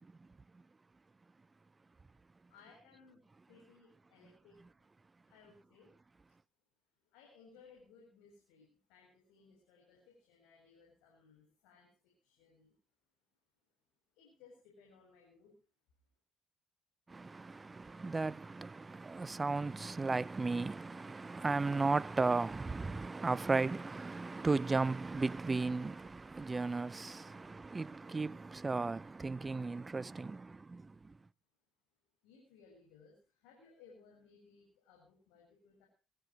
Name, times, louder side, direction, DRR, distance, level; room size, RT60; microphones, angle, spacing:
voice 1, 2.5-4.8 5.2-6.0 6.2-6.3 7.0-12.8 14.1-15.5 32.2-35.9, left 5 dB, 80° left, 7.5 m, -62 dB
voice 2, 17.1-30.9, right 3 dB, 25° right, 0.7 m, -35 dB
23.5 x 14.5 x 3.1 m
hypercardioid pair, 60°, 0 cm